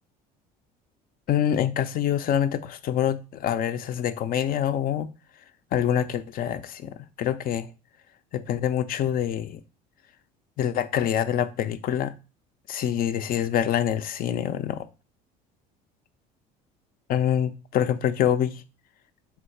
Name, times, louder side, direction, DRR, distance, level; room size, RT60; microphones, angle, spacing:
voice 1, 1.3-5.1 5.7-7.7 8.3-9.6 10.6-12.1 12.7-14.9 17.1-18.6, left 10 dB, 50° left, 0.5 m, -25 dB
3.7 x 2.7 x 4.5 m
supercardioid pair, 90°, 19 cm